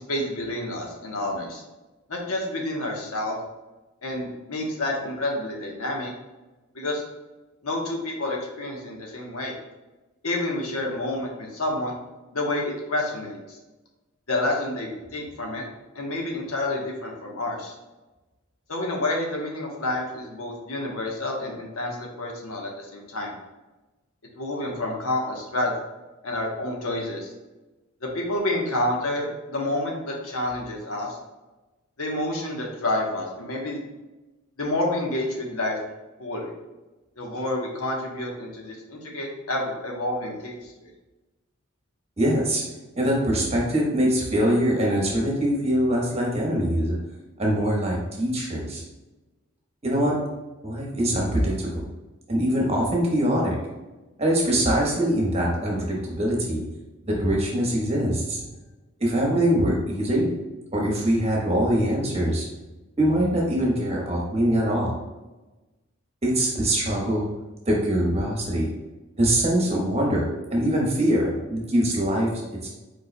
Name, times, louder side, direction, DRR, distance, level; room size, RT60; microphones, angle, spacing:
voice 1, 0.0-1.6 2.1-3.4 4.0-6.1 6.7-7.0 7.6-9.5 10.2-12.0 12.3-13.6 14.3-15.6 15.9-17.7 18.7-23.3 24.3-25.7 26.2-27.3 28.0-31.2 32.0-33.8 34.6-35.8 36.2-36.5 37.2-40.9, left 1 dB, 80° left, 0 dB, 1.1 m, -29 dB
voice 2, 42.2-42.6 42.9-46.9 47.4-48.8 49.8-50.2 50.6-51.8 52.3-53.6 54.2-56.6 57.0-58.4 59.0-60.3 60.7-62.5 63.0-64.9 66.2-67.3 67.7-68.7 69.2-70.3 70.5-72.7, equal, 30° right, -3 dB, 1.1 m, -23 dB
5.3 x 4.5 x 2.2 m, 1.1 s
head